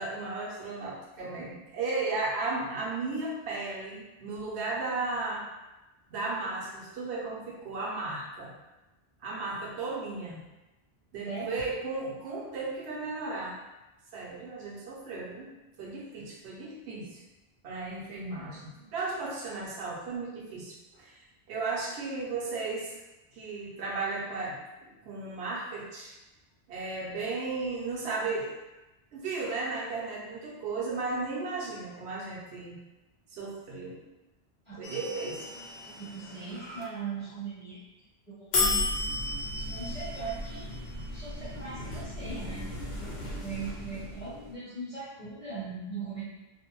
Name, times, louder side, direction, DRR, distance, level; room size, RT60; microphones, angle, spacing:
voice 1, 0.0-5.4 6.1-8.5 9.2-10.4 11.1-13.6 14.1-15.5 15.8-17.2 17.6-21.2 21.5-23.0 23.3-26.1 26.7-28.5 29.1-32.8 33.3-34.0 34.8-35.5, right 3 dB, 80° right, -4 dB, 0.9 m, -35 dB
sound 1, 34.8-36.8 38.5-44.5, left 2 dB, 70° left, 0.9 m, -34 dB
voice 2, 35.9-37.8 38.3-38.9 39.6-40.8 41.1-42.7 43.4-46.2, right 4 dB, 5° left, -12 dB, 0.6 m, -39 dB
2.5 x 2.0 x 2.9 m, 1.0 s
omnidirectional pair, 1.1 m